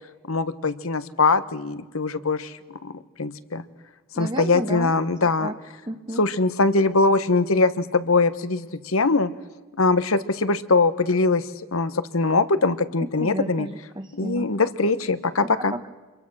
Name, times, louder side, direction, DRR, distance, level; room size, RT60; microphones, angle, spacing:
voice 1, 0.2-3.6 4.1-5.5 6.2-9.3 9.7-13.7 14.1-15.7, left 3 dB, 80° left, 13 dB, 1.2 m, -22 dB
voice 2, 4.2-4.9 5.4-5.5 5.9-6.2 13.0-14.5 15.7-15.9, right 1 dB, 20° right, 6 dB, 1.0 m, -32 dB
28.0 x 22.5 x 6.3 m, 1.2 s
head